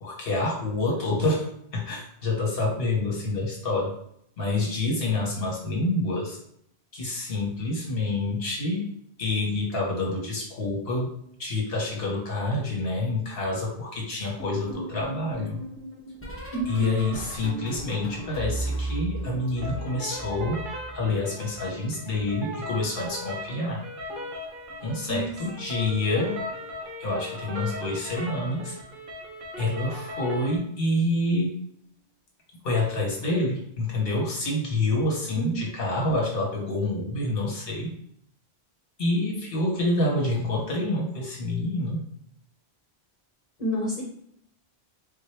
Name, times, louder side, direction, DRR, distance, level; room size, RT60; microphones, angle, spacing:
voice 1, 0.0-1.5 1.7-3.9 4.4-6.4 6.9-8.9 9.2-11.1 11.4-15.6 16.7-20.6 20.9-23.8 24.8-26.3 27.0-28.8 29.6-31.5 32.6-37.9 39.0-42.0, left 2 dB, 60° left, -2 dB, 1.3 m, -27 dB
sound 1, 14.4-21.2 21.4-23.0 24.0-24.4 24.6-25.0 26.5-26.8 27.1-27.4 28.9-29.0, right 2 dB, 15° left, 0.7 m, -37 dB
voice 2, 16.5-16.9 25.1-25.3 35.4-35.6 43.6-44.0, right 2 dB, 45° left, -5 dB, 1.0 m, -29 dB
sound 2, 19.6-30.6, left 1 dB, 55° right, 0.9 m, -38 dB
3.9 x 2.1 x 3.3 m, 0.71 s
omnidirectional pair, 1.1 m